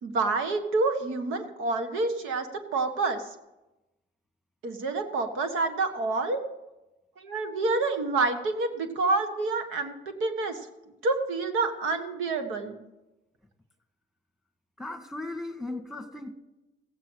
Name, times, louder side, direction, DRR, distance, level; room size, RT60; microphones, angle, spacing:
voice 1, 0.0-2.5 2.7-3.2 4.6-6.4 7.2-9.9 10.2-10.6 11.0-12.8, right 3 dB, 90° right, 7 dB, 1.6 m, -28 dB
voice 2, 14.8-16.3, left 2 dB, ahead, 5 dB, 1.6 m, -37 dB
15.5 x 8.7 x 6.3 m, 0.99 s
cardioid pair, 90°, 20 cm